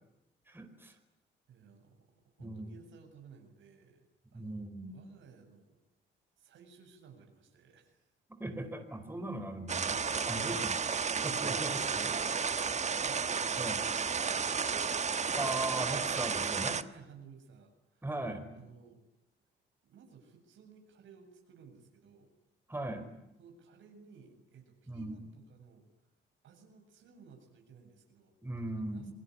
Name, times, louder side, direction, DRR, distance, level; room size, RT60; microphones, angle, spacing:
voice 1, 0.5-1.0 2.4-2.7 4.3-4.9 8.3-10.8 11.1-12.1 13.6-13.8 15.3-16.8 18.0-18.5 22.7-23.1 24.9-25.2 28.4-29.1, right 1 dB, 10° right, 6 dB, 4.8 m, -39 dB
voice 2, 1.5-4.0 4.3-5.8 6.4-8.1 12.6-15.0 16.8-18.1 18.5-19.0 19.8-22.3 23.4-25.9 26.4-29.1, right 6 dB, 75° right, 4 dB, 7.6 m, -57 dB
sound 1, 9.7-16.8, right 5 dB, 35° right, 1.3 m, -32 dB
28.5 x 20.5 x 9.9 m, 0.85 s
cardioid pair, 90°, 20 cm